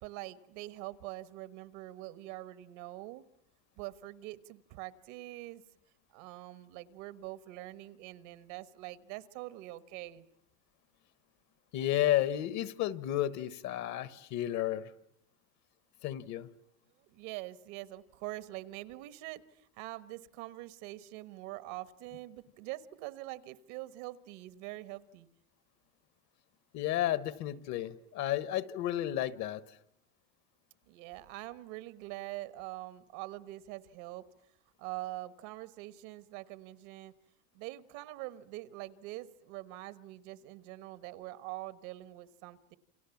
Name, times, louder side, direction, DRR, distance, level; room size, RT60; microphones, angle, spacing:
voice 1, 0.0-3.2 3.8-5.6 6.1-10.3 17.0-25.3 30.9-34.2 34.8-37.1 37.5-42.8, right 17 dB, 70° right, 14 dB, 1.4 m, -44 dB
voice 2, 11.7-14.9 16.0-16.5 26.7-29.6, left 13 dB, 45° left, 15 dB, 1.2 m, -32 dB
28.5 x 27.0 x 7.2 m, 0.74 s
cardioid pair, 150°, 38 cm